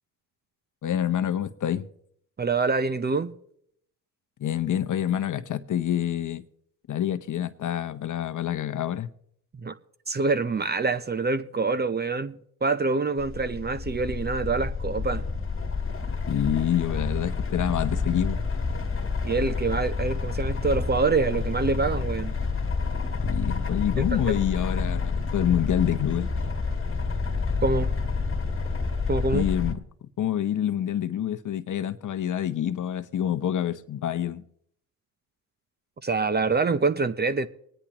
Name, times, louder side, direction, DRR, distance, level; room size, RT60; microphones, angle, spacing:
voice 1, 0.8-1.9 4.4-6.4 6.9-9.1 16.3-18.4 23.2-26.3 29.3-29.8 30.2-34.4, left 10 dB, 45° left, 0.9 m, -27 dB
voice 2, 2.4-3.3 9.5-9.7 10.1-15.2 19.2-22.3 24.0-24.2 27.6-27.9 29.1-29.5 36.0-37.5, right 4 dB, 25° right, 0.7 m, -26 dB
sound 1, 13.2-29.7, left 4 dB, 30° left, 1.5 m, -29 dB
24.0 x 9.9 x 3.0 m
supercardioid pair, 65°, 41 cm